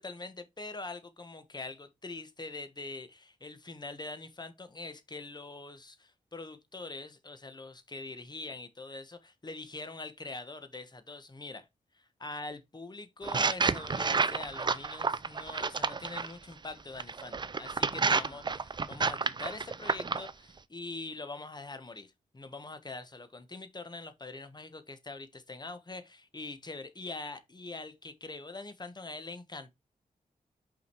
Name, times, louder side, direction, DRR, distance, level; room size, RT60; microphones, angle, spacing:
voice 1, 0.0-11.7 11.9-29.7, left 3 dB, 30° left, 1.2 m, -43 dB
sound 1, 13.2-16.3 17.0-20.3, right 4 dB, 30° right, 0.5 m, -30 dB
5.7 x 5.0 x 4.5 m
wide cardioid pair, 85°, 15 cm